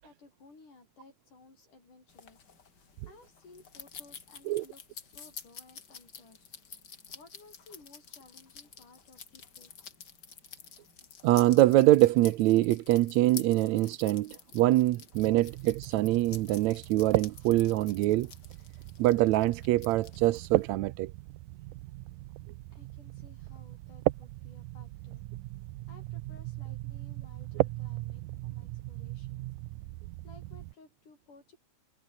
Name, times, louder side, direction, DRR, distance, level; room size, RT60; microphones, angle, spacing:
voice 1, 0.0-2.4 2.7-6.5 7.1-9.7 22.7-25.2 25.9-29.5 30.2-31.6, left 3 dB, 85° left, 9.5 m, -57 dB
sound 1, 2.1-20.7, left 6 dB, 35° left, 2.2 m, -50 dB
voice 2, 11.2-18.3 19.0-21.1, right 16 dB, 75° right, 1.9 m, -24 dB
sound 2, 15.1-30.7, right 18 dB, 90° right, 2.2 m, -37 dB
omnidirectional pair, 3.5 m